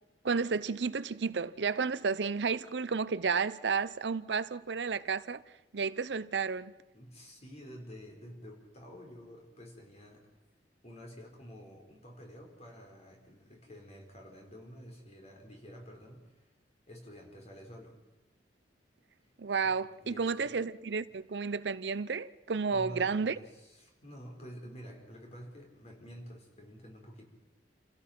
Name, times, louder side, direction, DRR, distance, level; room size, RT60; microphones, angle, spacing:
voice 1, 0.2-5.4 5.7-6.7 19.4-23.4, right 5 dB, 70° right, 0.6 m, -32 dB
voice 2, 6.9-10.3 10.8-16.5 16.9-18.0 19.6-19.8 20.0-20.6 22.7-27.3, equal, 40° left, 4.6 m, -49 dB
28.5 x 17.0 x 6.0 m
head